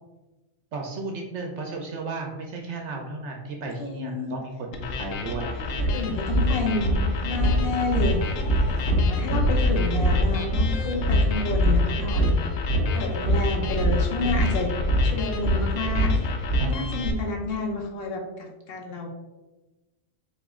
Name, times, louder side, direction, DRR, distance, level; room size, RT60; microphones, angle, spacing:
voice 1, 0.7-5.6 16.6-17.0, right 3 dB, 65° right, 1 dB, 0.9 m, -34 dB
voice 2, 3.8-4.3 5.5-8.2 8.9-12.4 12.9-14.7 15.0-16.3 16.6-19.1, left 3 dB, 55° left, 1 dB, 1.0 m, -30 dB
sound 1, 4.7-17.1, left 4 dB, 80° left, 1.0 m, -34 dB
sound 2, 5.3-5.4 5.7-17.1, equal, 25° left, 1.1 m, -23 dB
4.3 x 3.0 x 3.6 m, 1.1 s
omnidirectional pair, 1.3 m